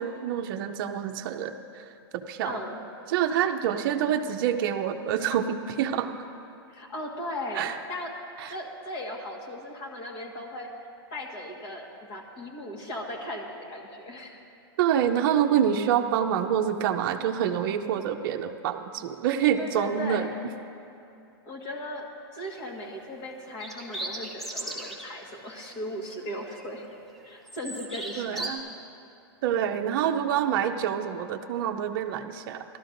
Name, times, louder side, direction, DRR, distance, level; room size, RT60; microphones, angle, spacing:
voice 1, 0.0-1.8 2.1-2.6 3.1-6.1 7.5-7.8 8.4-8.5 14.8-20.3 28.2-28.6 29.4-32.6, right 9 dB, 55° right, 6 dB, 0.6 m, -27 dB
voice 2, 2.4-2.8 6.7-8.1 8.5-10.7 11.1-14.4 19.6-20.3 21.4-22.1 22.3-26.8 27.2-28.5, left 1 dB, 35° left, -1 dB, 1.6 m, -37 dB
sound 1, 22.4-22.7 23.5-25.1 25.5-25.7 26.1-26.9 27.2-28.5, right 1 dB, ahead, 0.7 m, -37 dB
15.5 x 12.0 x 2.6 m, 2.7 s
supercardioid pair, 150°, 13 cm